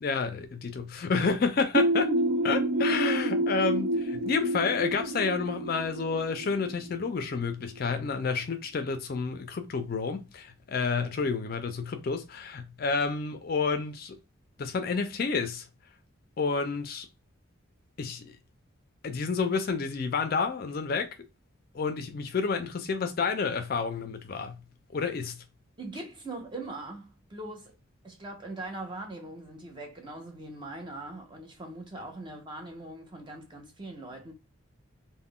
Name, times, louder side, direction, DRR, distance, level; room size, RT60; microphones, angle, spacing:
voice 1, 0.0-2.1 2.4-14.2 14.6-15.7 16.4-17.1 18.0-18.4 19.0-21.1 21.7-24.6 24.9-25.4, left 4 dB, 45° left, 0.4 m, -30 dB
sound 1, 1.7-7.3, right 1 dB, 70° right, 0.4 m, -28 dB
voice 2, 25.8-27.8 28.0-34.3, right 2 dB, 20° right, 0.6 m, -41 dB
2.3 x 2.1 x 3.6 m
head